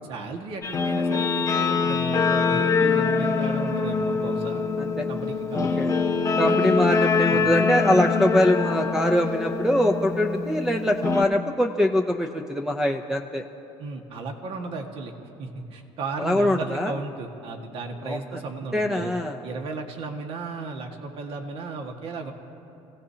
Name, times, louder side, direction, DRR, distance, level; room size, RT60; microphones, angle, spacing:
voice 1, 0.1-4.6 5.1-6.0 6.4-6.8 7.3-7.5 13.8-15.1 15.4-19.1 19.4-22.3, right 3 dB, 55° right, 3 dB, 1.8 m, -35 dB
Guitar, 0.6-11.2, left 4 dB, 30° left, 1.1 m, -24 dB
voice 2, 5.5-5.9 6.4-13.4 16.2-16.9 18.0-18.2 18.7-19.4, left 1 dB, 5° right, 4 dB, 0.6 m, -23 dB
28.0 x 17.0 x 2.9 m, 2.9 s
cardioid pair, 115°, 11 cm